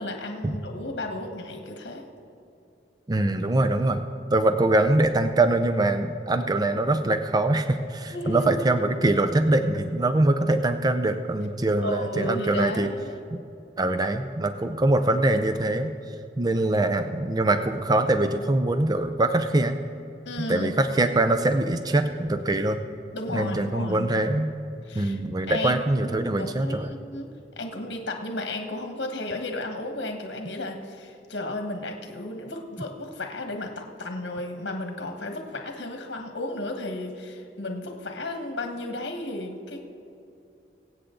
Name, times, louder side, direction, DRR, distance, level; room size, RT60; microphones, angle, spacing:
voice 1, 0.0-2.1 8.1-8.5 11.8-13.2 20.2-20.8 23.1-24.1 24.8-25.2 25.5-27.3 27.6-39.9, left 1 dB, 85° left, 3 dB, 1.4 m, -33 dB
voice 2, 3.1-12.9 13.3-13.4 13.8-19.8 20.4-22.8 23.3-24.5 24.9-26.9, right 2 dB, 20° right, 8 dB, 0.5 m, -23 dB
23.5 x 8.3 x 3.8 m, 2.8 s
head